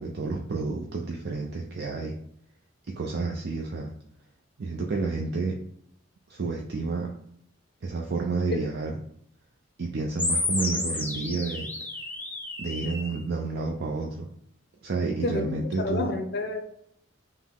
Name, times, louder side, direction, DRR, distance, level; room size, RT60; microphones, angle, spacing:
voice 1, 0.0-2.2 2.9-3.9 4.6-5.6 6.3-7.1 7.8-8.9 9.8-11.7 12.6-14.3 14.8-16.1, right 3 dB, 55° right, 0 dB, 0.5 m, -30 dB
sound 1, 10.2-13.2, left 2 dB, 10° left, 0.6 m, -31 dB
voice 2, 15.2-16.6, left 2 dB, 60° left, 5 dB, 0.5 m, -29 dB
5.7 x 2.1 x 3.4 m, 0.69 s
head